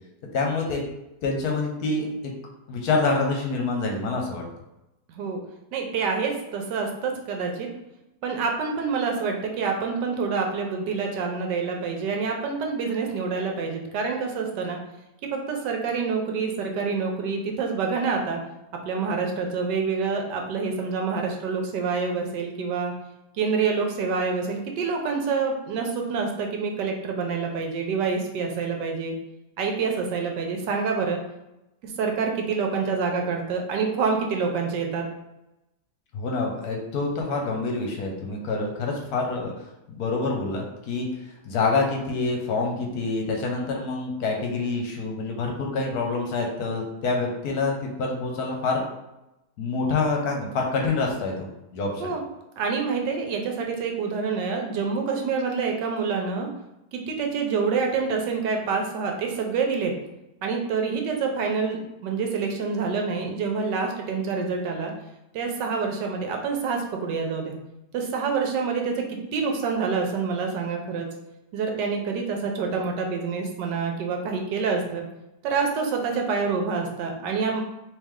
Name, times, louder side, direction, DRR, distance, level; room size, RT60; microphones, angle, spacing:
voice 1, 0.3-0.8 1.2-2.3 2.7-4.4 36.1-39.5 40.0-41.1 41.4-48.8 49.6-51.5 51.7-52.1, left 3 dB, 70° left, 1 dB, 1.1 m, -26 dB
voice 2, 5.1-5.4 5.7-7.7 8.2-14.8 15.3-18.4 18.8-22.9 23.3-29.1 29.6-31.2 31.8-35.1 52.0-52.2 52.6-56.5 56.9-59.9 60.4-64.9 65.3-67.5 67.9-71.1 71.5-75.0 75.4-77.6, right 5 dB, 80° right, 2 dB, 1.3 m, -27 dB
3.2 x 3.0 x 3.6 m, 0.92 s
omnidirectional pair, 1.8 m